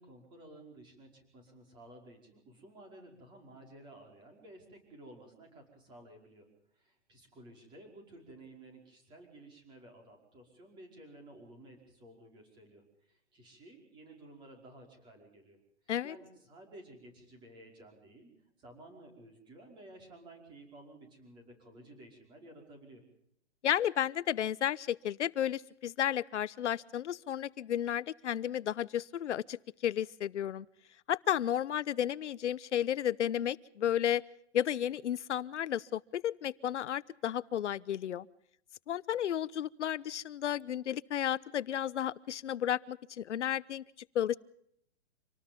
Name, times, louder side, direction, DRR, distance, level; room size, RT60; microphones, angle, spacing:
voice 1, 0.0-6.5 6.7-15.6 16.0-18.3 18.6-23.0, right 1 dB, 15° right, 2 dB, 5.2 m, -54 dB
voice 2, 23.6-30.7 31.1-34.2 34.5-38.3 38.9-43.8 44.1-44.4, left 10 dB, 85° left, 18 dB, 0.9 m, -33 dB
27.0 x 19.5 x 5.3 m, 0.70 s
hypercardioid pair, 175°, 35 cm